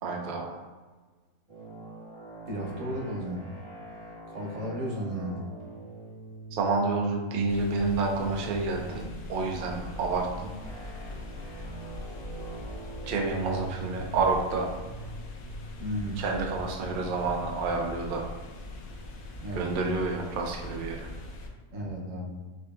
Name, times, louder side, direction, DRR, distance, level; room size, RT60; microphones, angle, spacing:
voice 1, 0.0-0.6 6.5-9.0 9.3-10.5 13.1-14.7 16.2-18.2 19.5-21.1, right 3 dB, 85° right, 1 dB, 0.4 m, -29 dB
sound 1, 1.5-18.0, right 2 dB, 25° right, 0.7 m, -45 dB
voice 2, 2.5-3.4 4.3-5.5 15.8-16.2 19.4-19.7 21.7-22.4, equal, 60° right, -2 dB, 1.1 m, -34 dB
sound 2, 7.5-21.5, left 2 dB, 70° left, 1.0 m, -42 dB
5.0 x 2.6 x 2.4 m, 1.3 s
omnidirectional pair, 1.6 m